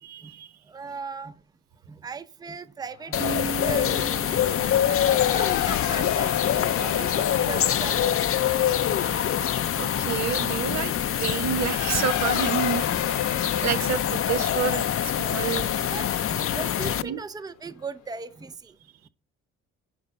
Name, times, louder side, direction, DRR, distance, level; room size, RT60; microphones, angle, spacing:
voice 1, 0.0-0.5 9.8-10.9 11.2-14.8 15.2-15.7 17.0-17.2, right 9 dB, 65° right, 0.9 m, -29 dB
voice 2, 0.6-1.4 1.9-4.4 4.8-8.3 8.6-9.1 13.4-13.7 15.9-18.8, right 5 dB, 15° right, 0.6 m, -38 dB
Race car auto racing / Accelerating revving vroom, 2.8-16.9, left 11 dB, 75° left, 1.1 m, -35 dB
sound 1, 3.1-17.0, left 10 dB, 50° left, 0.6 m, -25 dB
Acoustic guitar, 3.2-7.3, right 6 dB, 40° right, 1.4 m, -39 dB
10.5 x 4.7 x 5.3 m
supercardioid pair, 65°, 30 cm